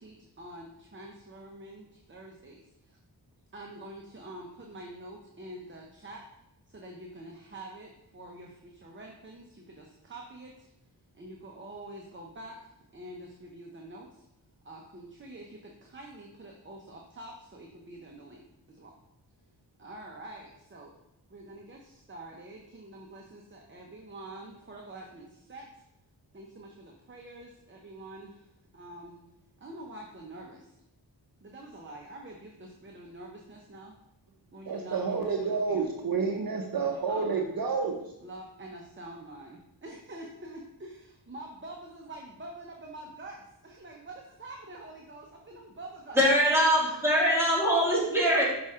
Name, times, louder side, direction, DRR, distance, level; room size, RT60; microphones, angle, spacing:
voice 1, 0.0-3.0 3.5-6.2 6.7-10.7 11.1-14.2 14.6-18.9 19.8-20.9 21.3-25.8 26.3-29.2 29.6-30.8 31.4-33.9 34.5-35.9 36.7-37.5 38.2-46.2 46.6-47.2, right 1 dB, 30° right, 0 dB, 0.9 m, -46 dB
voice 2, 34.7-37.9, right 5 dB, 55° right, 2 dB, 0.8 m, -29 dB
voice 3, 46.1-48.4, equal, 5° right, -6 dB, 2.6 m, -23 dB
6.0 x 5.4 x 3.7 m, 0.84 s
wide cardioid pair, 70°, 42 cm